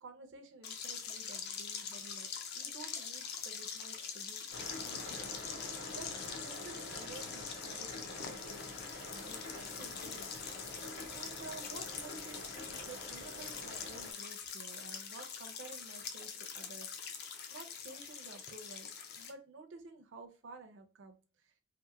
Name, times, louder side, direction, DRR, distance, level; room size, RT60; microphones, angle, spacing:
voice 1, 0.0-4.4 4.8-5.3 5.9-6.1 6.4-8.7 9.1-10.3 11.1-16.9 17.5-21.5, right 3 dB, 60° right, 6 dB, 0.5 m, -52 dB
sound 1, 0.6-19.3, left 7 dB, 50° left, 0.4 m, -44 dB
sound 2, 4.5-14.1, left 1 dB, 70° left, 1.2 m, -47 dB
2.8 x 2.1 x 2.3 m, 0.34 s
head